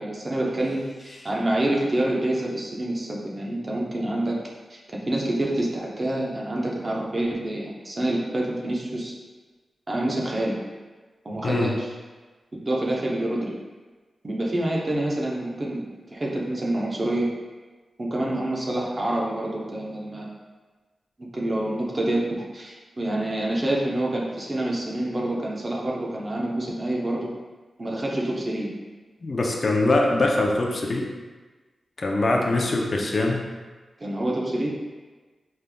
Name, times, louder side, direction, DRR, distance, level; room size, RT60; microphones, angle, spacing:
voice 1, 0.0-4.4 4.7-9.1 9.9-10.6 11.2-11.9 12.6-13.5 14.2-15.8 16.1-17.3 18.0-20.3 21.3-27.3 27.8-28.7 34.0-34.7, right 1 dB, 35° right, -3 dB, 0.8 m, -27 dB
voice 2, 29.2-31.1 32.0-33.4, left 2 dB, 50° left, 0 dB, 0.5 m, -23 dB
5.1 x 3.3 x 2.2 m, 1.3 s
cardioid pair, 70°, 0 cm